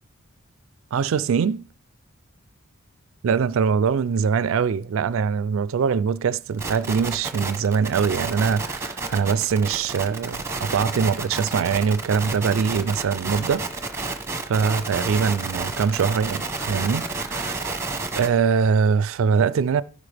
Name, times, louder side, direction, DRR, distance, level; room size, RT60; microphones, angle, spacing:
voice 1, 0.9-1.6 3.2-13.6 13.9-14.0 14.4-17.7 18.2-19.8, right 6 dB, 65° right, 0.3 m, -23 dB
sound 1, 6.6-18.3, right 3 dB, 15° right, 0.9 m, -30 dB
14.5 x 5.3 x 3.4 m
head